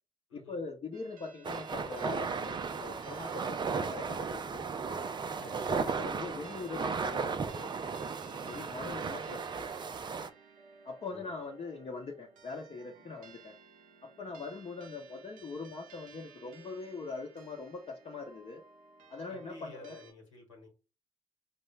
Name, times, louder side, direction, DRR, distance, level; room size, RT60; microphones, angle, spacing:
voice 1, 0.3-4.7 5.7-7.7 8.5-9.7 10.8-13.5 14.0-18.6 19.1-20.0, left 4 dB, 35° left, 0 dB, 0.8 m, -42 dB
sound 1, 0.9-20.1, right 5 dB, 65° right, 0.7 m, -56 dB
sound 2, 1.4-10.3, right 5 dB, 30° right, 0.4 m, -35 dB
voice 2, 5.4-5.7 8.4-8.7 11.1-11.3 19.3-20.7, left 2 dB, 85° left, -1 dB, 1.3 m, -52 dB
4.5 x 2.1 x 3.2 m, 0.32 s
figure-of-eight pair, 45°, 15 cm